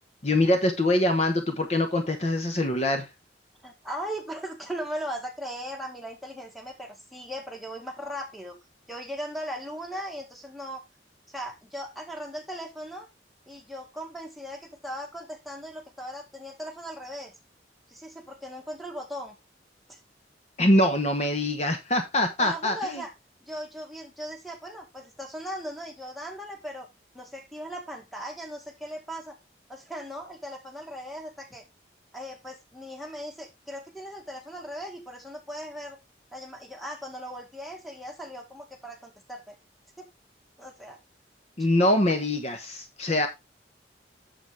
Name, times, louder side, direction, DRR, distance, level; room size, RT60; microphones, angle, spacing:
voice 1, 0.2-3.1 20.6-22.8 41.6-43.3, left 1 dB, 40° left, 6 dB, 1.1 m, -24 dB
voice 2, 3.6-8.6 8.9-10.8 11.3-13.1 13.5-17.3 17.9-19.4 19.9-20.0 22.4-23.1 23.4-26.9 27.1-29.3 29.7-31.6 32.1-36.0 36.3-39.6 40.0-40.1 40.6-41.0, equal, ahead, 0 dB, 1.8 m, -38 dB
8.1 x 7.1 x 3.4 m, 0.22 s
head